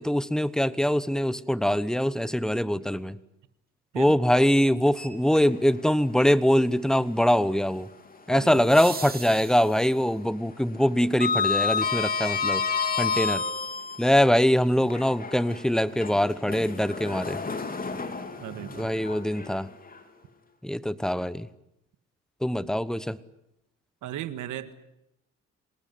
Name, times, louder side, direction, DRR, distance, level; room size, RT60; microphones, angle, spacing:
voice 1, 0.0-3.2 3.9-7.9 8.3-12.6 13.0-13.4 14.0-17.4 18.8-19.7 20.6-21.5 22.4-23.2, equal, ahead, 17 dB, 1.1 m, -23 dB
sound 1, 2.8-2.9 8.4-10.2 12.4-12.5, right 4 dB, 30° right, 3.4 m, -40 dB
Sliding door, 4.9-5.9 6.2-6.4 8.1-9.1 9.4-9.8 10.0-14.1 14.8-20.0, left 5 dB, 30° left, 3.4 m, -30 dB
voice 2, 8.3-8.6 18.4-18.9 24.0-24.7, right 12 dB, 85° right, 12 dB, 1.8 m, -36 dB
26.5 x 19.5 x 9.4 m, 0.87 s
cardioid pair, 90°, 30 cm